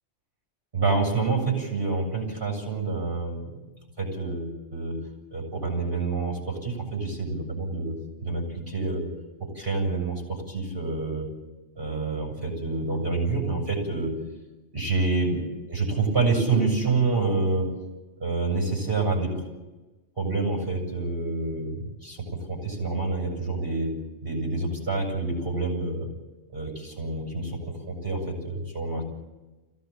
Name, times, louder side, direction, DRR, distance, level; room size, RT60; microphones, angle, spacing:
voice 1, 0.7-3.5 4.0-5.0 5.3-9.1 9.4-11.3 11.8-14.1 14.7-17.7 18.2-19.4 20.2-23.9 24.2-26.1 26.5-29.0, right 3 dB, 50° right, 2 dB, 8.3 m, -27 dB
26.0 x 17.0 x 9.0 m, 1.1 s
omnidirectional pair, 1.2 m